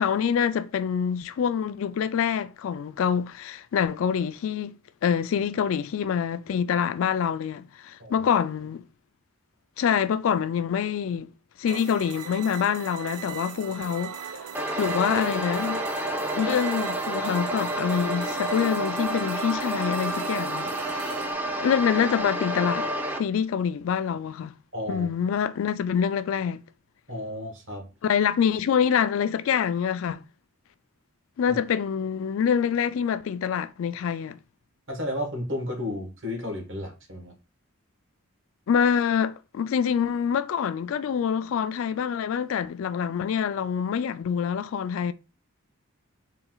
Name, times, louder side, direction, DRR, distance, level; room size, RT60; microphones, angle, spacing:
voice 1, 0.0-8.8 9.8-11.3 11.6-14.2 14.8-15.8 16.3-21.2 21.6-22.9 23.2-24.5 24.9-26.6 28.0-30.2 31.4-34.4 38.7-45.1, left 7 dB, 65° left, 0.3 m, -26 dB
sound 1, 11.7-21.3, right 8 dB, 85° right, 0.4 m, -39 dB
sound 2, 14.5-23.2, right 1 dB, 10° right, 0.4 m, -29 dB
voice 2, 24.7-25.1 27.1-27.9 31.5-31.6 34.9-37.3, left 1 dB, 60° right, 1.3 m, -33 dB
4.0 x 2.3 x 3.8 m
head